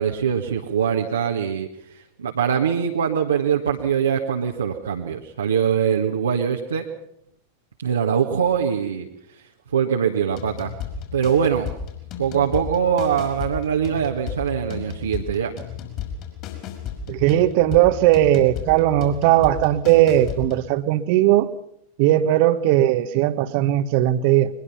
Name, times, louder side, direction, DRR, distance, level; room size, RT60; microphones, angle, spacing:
voice 1, 0.0-6.9 7.8-9.1 9.7-10.7 11.1-11.7 12.2-15.5, right 7 dB, 70° right, -1 dB, 1.7 m, -22 dB
sound 1, 10.3-20.7, left 8 dB, 40° left, 5.8 m, -34 dB
voice 2, 17.1-21.5 22.0-24.5, right 13 dB, 45° right, 13 dB, 1.4 m, -18 dB
22.0 x 21.5 x 5.7 m, 0.73 s
figure-of-eight pair, 90°, 0 cm